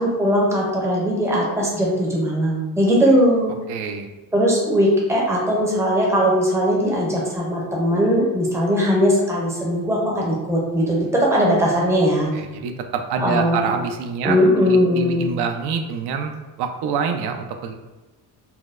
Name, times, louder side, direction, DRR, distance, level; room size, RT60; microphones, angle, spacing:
voice 1, 0.0-3.6 4.3-12.4 13.2-13.7 14.2-15.3, equal, 5° right, -4 dB, 0.5 m, -19 dB
voice 2, 3.7-4.1 12.3-14.4 14.7-16.3 16.6-17.7, right 6 dB, 75° right, 5 dB, 0.5 m, -26 dB
4.2 x 2.1 x 2.3 m, 1.1 s
cardioid pair, 175°, 39 cm